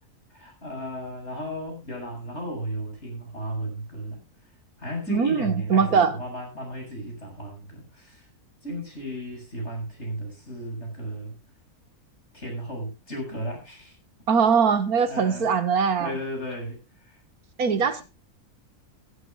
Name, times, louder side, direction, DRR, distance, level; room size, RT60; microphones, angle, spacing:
voice 1, 0.3-4.2 4.8-8.3 8.6-11.3 12.3-13.9 15.1-15.5 16.0-17.2 17.7-18.0, equal, 45° left, 2 dB, 7.8 m, -35 dB
voice 2, 5.1-6.2 14.3-16.1 17.6-18.0, right 6 dB, 75° right, 11 dB, 2.1 m, -21 dB
16.0 x 15.5 x 2.5 m, 0.28 s
omnidirectional pair, 1.6 m